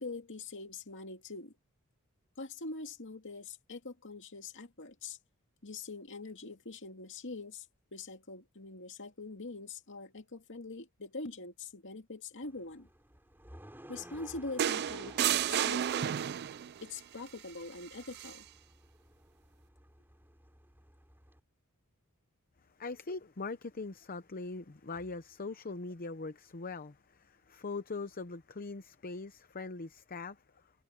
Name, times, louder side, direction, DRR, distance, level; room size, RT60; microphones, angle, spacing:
voice 1, 0.0-1.5 2.4-5.2 5.6-7.7 7.9-12.9 13.9-16.2 16.8-18.4, left 3 dB, 55° left, 2.5 m, -44 dB
sound 1, 12.4-21.4, right 1 dB, 10° right, 5.4 m, -56 dB
sound 2, 14.6-16.7 18.1-18.3, right 10 dB, 50° right, 0.4 m, -31 dB
voice 2, 22.8-30.4, left 3 dB, 40° left, 0.8 m, -41 dB
head